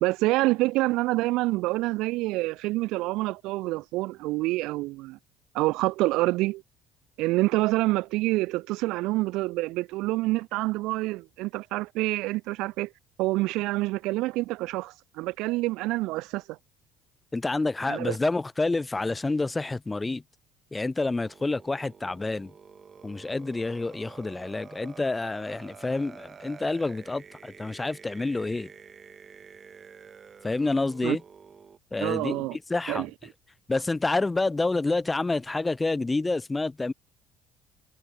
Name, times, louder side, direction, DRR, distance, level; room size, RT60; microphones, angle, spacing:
voice 1, 0.0-5.2 5.5-6.6 7.2-12.9 13.2-16.6 17.9-18.2 31.0-31.2 32.0-32.6 32.9-33.1, right 20 dB, 75° right, 1.1 m, -27 dB
voice 2, 17.3-20.2 20.7-22.5 23.0-28.7 30.4-31.2 31.9-33.1 33.7-36.9, left 3 dB, 15° left, 2.4 m, -28 dB
sound 1, 21.2-31.8, right 6 dB, 35° right, 2.9 m, -49 dB
cardioid pair, 105°, 0 cm